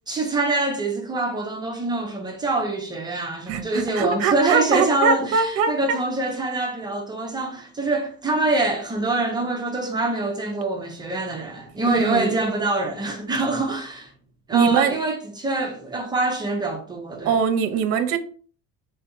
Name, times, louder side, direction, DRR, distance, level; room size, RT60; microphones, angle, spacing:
voice 1, 0.1-14.1 14.5-17.3, right 2 dB, 15° right, 0.4 m, -25 dB
voice 2, 3.5-5.8 11.9-12.4 14.5-15.0 17.2-18.2, right 6 dB, 50° right, 0.7 m, -22 dB
3.5 x 2.7 x 4.6 m
cardioid pair, 180°, 31 cm